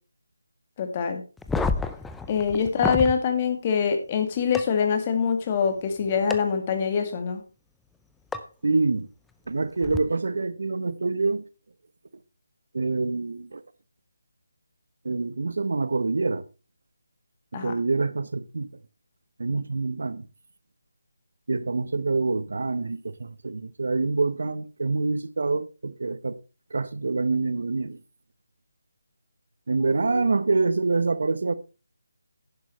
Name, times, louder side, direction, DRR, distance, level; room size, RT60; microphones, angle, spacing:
voice 1, 0.8-1.2 2.3-7.4 17.5-17.7 29.8-30.3, left 6 dB, 25° left, 2.0 m, -25 dB
sound 1, 1.4-3.2 4.5-4.6 6.3-6.4 8.3-8.4 9.8-10.0, left 3 dB, 5° left, 0.5 m, -28 dB
voice 2, 8.6-9.1 9.5-11.4 12.7-13.6 15.0-16.4 17.5-18.7 19.4-20.3 21.5-26.4 26.7-28.0 29.7-31.5, right 3 dB, 65° right, 0.9 m, -26 dB
10.5 x 10.5 x 3.1 m
figure-of-eight pair, 160°, 0 cm